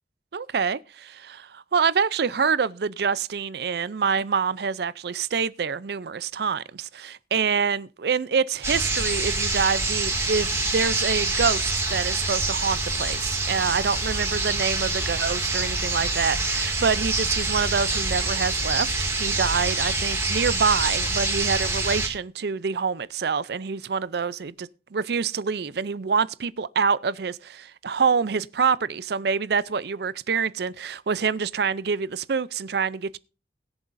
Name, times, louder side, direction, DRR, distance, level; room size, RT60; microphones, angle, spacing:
voice 1, 0.3-33.2, right 5 dB, 65° right, 0.5 m, -26 dB
sound 1, 8.6-22.1, right 3 dB, 15° right, 2.3 m, -26 dB
21.0 x 7.1 x 2.6 m
head